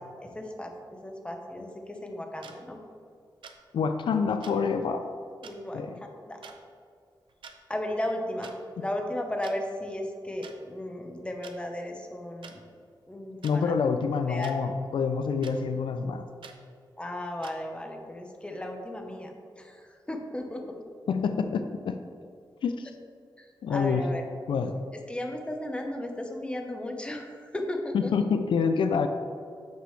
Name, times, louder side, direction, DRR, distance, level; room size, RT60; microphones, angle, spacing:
voice 1, 0.2-2.8 5.4-6.5 7.7-8.5 8.8-12.6 13.1-13.9 14.3-14.6 17.0-20.8 23.4-24.2 24.9-28.3, left 1 dB, 15° left, 3 dB, 0.7 m, -35 dB
sound 1, 2.4-2.5 3.4-3.6 4.4-4.5 5.4-5.5 6.4-6.6 7.3-7.6 8.4-8.5 9.4-9.5 10.4-10.5 11.4-11.5 12.4-12.5 13.4-13.6 14.4-14.6 15.4-15.5 16.4-16.6 17.4-17.5, right 6 dB, 90° right, 0.6 m, -46 dB
voice 2, 3.7-5.1 5.7-5.9 13.4-16.2 21.1-22.0 22.6-22.9 23.6-24.0 24.5-24.7 27.9-29.1, left 5 dB, 85° left, 8 dB, 0.4 m, -27 dB
8.3 x 6.1 x 3.2 m, 2.3 s
wide cardioid pair, 140°, 8 cm